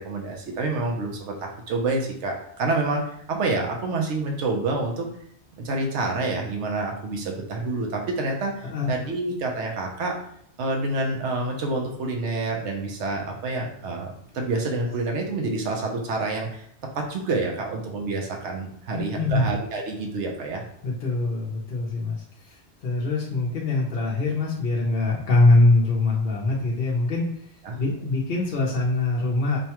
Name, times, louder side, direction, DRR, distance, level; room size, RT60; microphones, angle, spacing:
voice 1, 0.0-3.0 3.3-5.1 5.6-10.2 10.6-16.6 16.9-20.6 27.6-27.8, right 3 dB, 85° right, 1 dB, 1.0 m, -28 dB
voice 2, 19.1-19.5 20.8-27.3 27.8-29.6, left 2 dB, 55° left, -3 dB, 0.8 m, -23 dB
5.4 x 2.2 x 2.9 m, 0.68 s
omnidirectional pair, 1.2 m